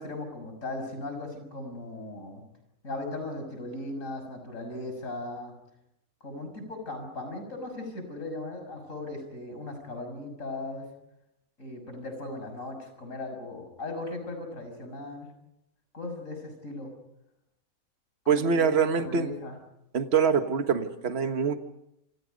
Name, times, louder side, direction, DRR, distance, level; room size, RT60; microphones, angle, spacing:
voice 1, 0.0-2.4 2.8-5.5 6.2-10.8 11.6-15.3 15.9-16.9 18.2-19.5, left 2 dB, 55° left, 6 dB, 6.6 m, -38 dB
voice 2, 18.3-19.3 19.9-21.6, right 6 dB, 45° right, 7 dB, 1.7 m, -24 dB
28.5 x 27.0 x 5.3 m, 0.84 s
omnidirectional pair, 1.6 m